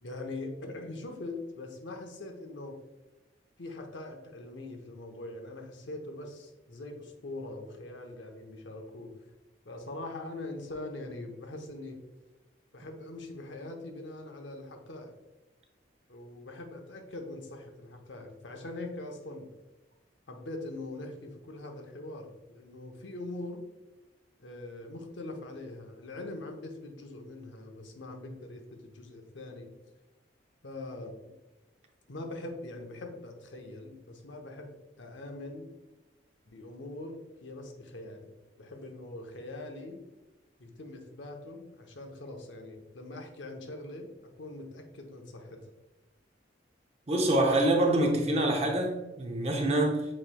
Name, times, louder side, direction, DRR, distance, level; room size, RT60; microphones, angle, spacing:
voice 1, 0.0-2.8 3.6-9.1 9.7-12.0 12.7-15.1 16.1-19.5 20.3-23.7 24.4-29.7 30.6-31.3 32.1-35.7 36.5-38.3 38.6-40.0 40.6-44.1 44.4-45.6, left 2 dB, 80° left, 0.8 m, -42 dB
voice 2, 47.1-50.0, right 1 dB, 35° right, 0.7 m, -26 dB
7.5 x 3.1 x 2.3 m
head